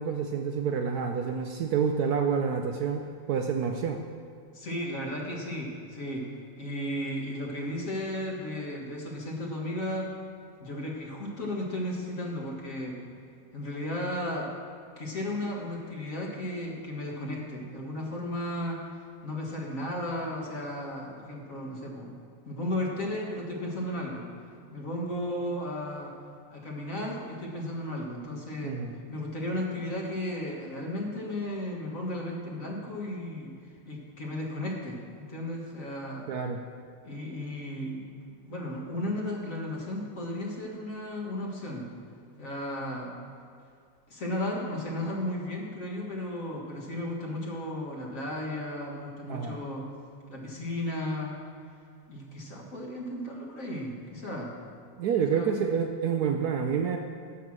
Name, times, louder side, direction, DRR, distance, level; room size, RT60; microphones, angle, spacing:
voice 1, 0.0-4.0 28.6-29.0 36.3-36.6 49.3-49.6 55.0-57.0, right 6 dB, 70° right, 4 dB, 1.0 m, -28 dB
voice 2, 4.5-6.3 6.6-10.1 10.6-13.0 13.5-14.5 15.0-18.8 19.2-22.2 22.5-24.3 24.7-26.1 26.5-28.8 29.1-33.5 33.9-36.3 37.0-38.0 38.4-41.9 42.4-43.1 44.1-49.9 50.3-51.3 52.1-54.5 55.3-55.5, left 1 dB, 45° left, -2 dB, 1.9 m, -34 dB
11.5 x 7.1 x 6.1 m, 2.2 s
omnidirectional pair, 2.0 m